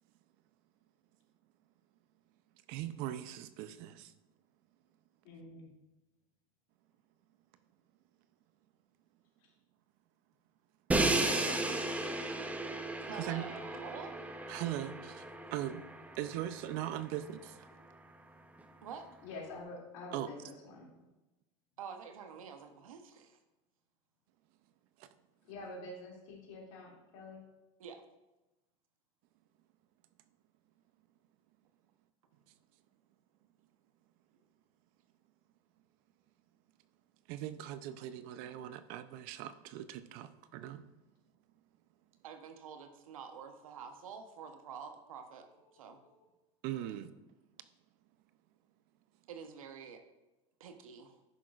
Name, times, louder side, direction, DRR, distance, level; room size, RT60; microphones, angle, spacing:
voice 1, 2.7-4.1 13.2-13.4 14.5-15.8 16.1-17.7 20.1-20.3 25.0-25.1 37.3-40.9 46.6-47.1, right 12 dB, 60° right, 0.6 m, -40 dB
voice 2, 5.2-5.7 9.4-9.5 19.2-20.9 25.4-27.4, left 2 dB, 75° left, 2.7 m, -47 dB
Crash cymbal, 10.9-16.9, right 2 dB, 10° right, 0.8 m, -34 dB
voice 3, 13.1-14.1 17.8-17.9 18.8-19.1 21.8-23.4 27.8-28.0 42.2-45.5 45.7-46.0 49.3-50.0 50.6-51.2, right 6 dB, 90° right, 1.0 m, -47 dB
10.5 x 6.1 x 2.5 m
hypercardioid pair, 100°, 17 cm